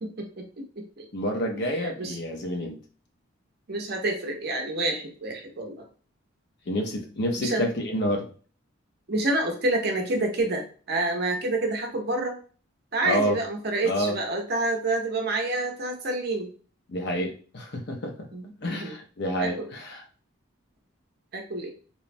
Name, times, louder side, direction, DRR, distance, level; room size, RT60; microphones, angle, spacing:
voice 1, 0.0-1.1 1.6-2.2 3.7-5.8 7.4-7.7 9.1-12.3 12.9-16.5 18.3-18.9 19.4-19.7 21.3-21.7, right 2 dB, 50° right, 2 dB, 0.6 m, -28 dB
voice 2, 1.1-2.8 6.7-8.3 13.0-13.4 13.8-14.2 16.9-18.3 18.6-20.0, equal, 50° left, 3 dB, 0.5 m, -28 dB
2.9 x 2.1 x 2.5 m, 0.39 s
head